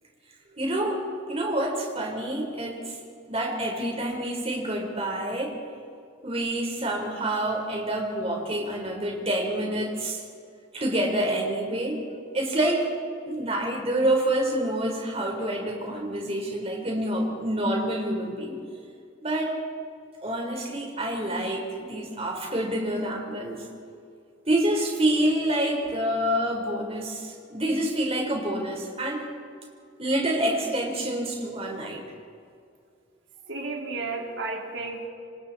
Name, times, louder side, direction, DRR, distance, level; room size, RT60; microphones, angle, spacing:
voice 1, 0.6-1.0 1.3-3.0 3.3-5.6 6.2-10.2 10.7-12.0 12.3-12.9 13.3-18.6 19.2-19.5 20.2-23.6 24.5-29.3 30.0-32.0, right 1 dB, 30° right, 0 dB, 4.4 m, -27 dB
voice 2, 33.5-35.1, right 3 dB, 75° right, 0 dB, 3.6 m, -32 dB
28.0 x 26.0 x 4.4 m, 2.3 s
head